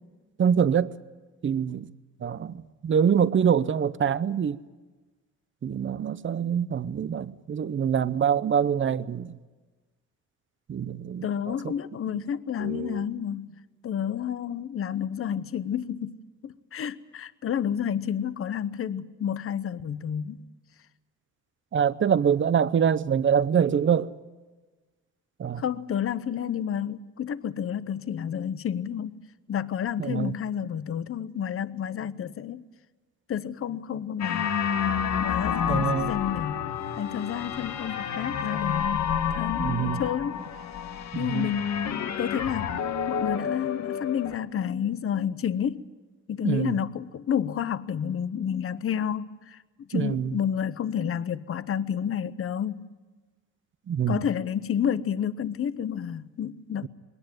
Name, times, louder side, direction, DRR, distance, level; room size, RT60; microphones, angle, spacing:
voice 1, 0.4-0.9 1.4-1.9 2.2-4.6 5.6-9.3 10.7-11.3 12.6-13.0 21.7-24.1 25.4-25.6 30.0-30.3 35.7-36.1 39.6-40.0 41.1-41.5 46.4-46.8 49.9-50.4 53.9-54.2, right 8 dB, 40° right, 0.7 m, -25 dB
voice 2, 11.2-20.5 25.6-29.2 29.5-32.6 33.3-34.6 35.2-36.6 37.0-40.4 41.1-42.8 43.1-45.9 46.3-52.9 54.1-56.9, left 8 dB, 45° left, 0.8 m, -30 dB
sound 1, 34.2-44.4, left 8 dB, 65° left, 1.3 m, -29 dB
21.0 x 18.0 x 9.1 m
cardioid pair, 90°, 30 cm